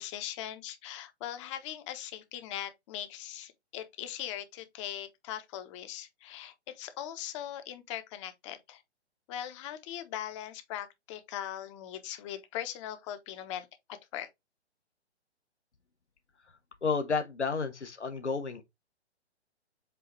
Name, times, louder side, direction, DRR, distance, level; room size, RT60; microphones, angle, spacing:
voice 1, 0.0-8.8 9.3-13.7 14.1-14.3, left 11 dB, 25° left, 1.1 m, -40 dB
voice 2, 16.8-18.6, left 4 dB, 85° left, 1.1 m, -31 dB
7.8 x 2.8 x 4.4 m
figure-of-eight pair, 130°, 34 cm